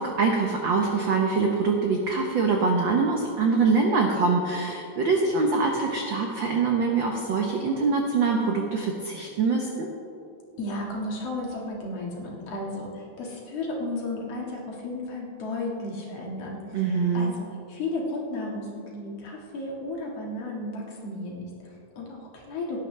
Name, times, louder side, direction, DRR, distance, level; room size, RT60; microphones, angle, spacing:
voice 1, 0.0-9.9 16.7-17.3, right 4 dB, 75° right, 1 dB, 1.0 m, -24 dB
voice 2, 10.6-22.8, left 2 dB, 60° left, -2 dB, 2.7 m, -34 dB
17.5 x 10.5 x 3.3 m, 2.7 s
omnidirectional pair, 3.4 m